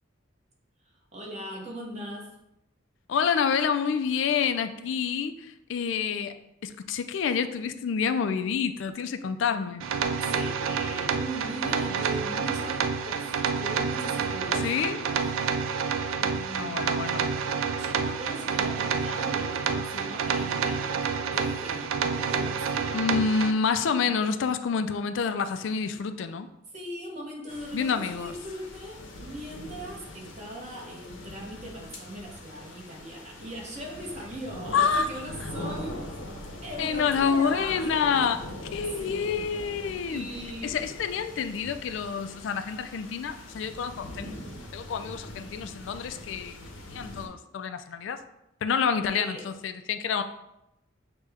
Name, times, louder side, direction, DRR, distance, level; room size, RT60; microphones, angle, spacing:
voice 1, 1.1-2.4 10.3-15.6 16.2-17.1 17.8-23.0 24.0-24.3 26.7-36.0 36.6-37.9 38.2-38.4 39.0-39.3 40.1-40.8 49.1-49.4, right 1 dB, 35° right, 0.9 m, -40 dB
voice 2, 3.1-6.4 6.6-9.8 14.5-15.0 16.6-17.3 22.9-26.5 27.7-28.3 34.7-35.1 36.8-38.4 38.7-40.3 40.6-44.4 44.7-46.6 46.9-48.2 48.6-50.2, left 6 dB, 70° left, 0.3 m, -28 dB
sound 1, 9.8-23.5, right 6 dB, 85° right, 0.3 m, -28 dB
sound 2, 27.5-47.3, left 1 dB, 85° left, 0.8 m, -42 dB
6.4 x 2.2 x 3.4 m
head